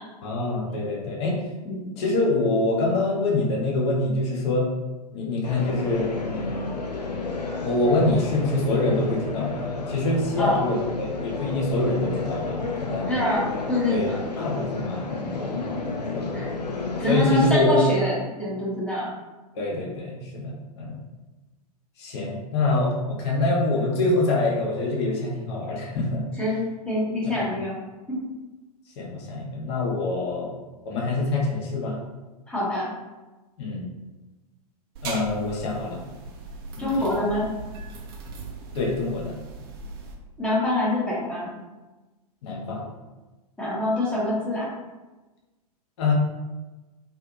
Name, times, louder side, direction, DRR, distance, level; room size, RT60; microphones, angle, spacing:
voice 1, 0.2-1.4 2.0-4.7 5.1-6.7 7.6-13.1 13.9-15.9 16.1-16.2 17.1-17.8 19.6-21.0 22.0-26.2 27.4-27.5 29.0-30.5 30.8-32.0 33.6-33.9 35.0-36.0 36.8-37.2 38.7-39.3 42.4-42.8 46.0-46.1, left 2 dB, 40° left, -2 dB, 0.7 m, -25 dB
sound 1, 5.4-17.3, left 3 dB, 85° left, 0.4 m, -31 dB
voice 2, 13.1-13.4 13.7-14.2 16.3-16.5 17.0-19.1 26.4-27.8 28.1-28.2 32.5-32.9 36.8-37.5 40.4-41.5 43.6-44.7, left 1 dB, 5° left, -8 dB, 0.7 m, -25 dB
sound 2, 34.9-40.1, right 3 dB, 35° right, 0.4 m, -38 dB
2.6 x 2.4 x 2.5 m, 1.1 s
figure-of-eight pair, 105°, 20 cm